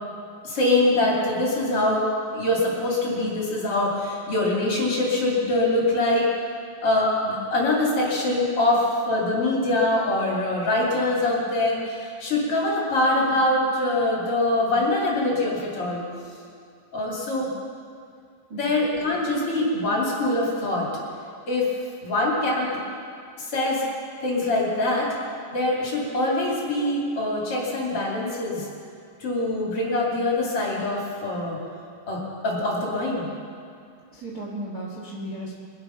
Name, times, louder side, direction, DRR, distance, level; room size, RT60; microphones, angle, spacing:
voice 1, 0.4-6.3 6.8-16.0 16.9-17.5 18.5-20.9 21.5-21.7 22.0-22.7 23.4-23.8 24.2-25.1 25.5-28.7 29.2-31.6 32.1-33.3, left 2 dB, 35° left, -4 dB, 3.0 m, -24 dB
voice 2, 34.1-35.5, right 1 dB, 65° right, -5 dB, 0.9 m, -35 dB
23.0 x 8.6 x 5.7 m, 2.3 s
omnidirectional pair, 5.0 m